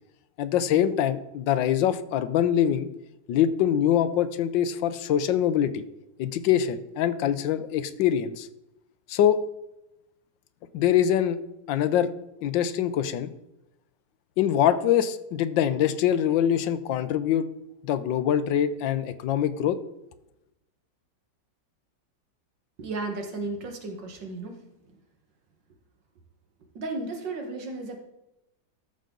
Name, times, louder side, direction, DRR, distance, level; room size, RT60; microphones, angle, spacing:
voice 1, 0.4-2.9 3.3-5.8 6.2-8.5 9.1-9.4 10.7-11.4 11.7-12.1 12.4-13.3 14.4-17.5 17.8-19.8, left 10 dB, 85° left, 13 dB, 1.4 m, -24 dB
voice 2, 22.8-24.6 26.8-28.0, right 3 dB, 75° right, 3 dB, 2.1 m, -34 dB
13.5 x 6.4 x 3.8 m, 0.92 s
omnidirectional pair, 2.0 m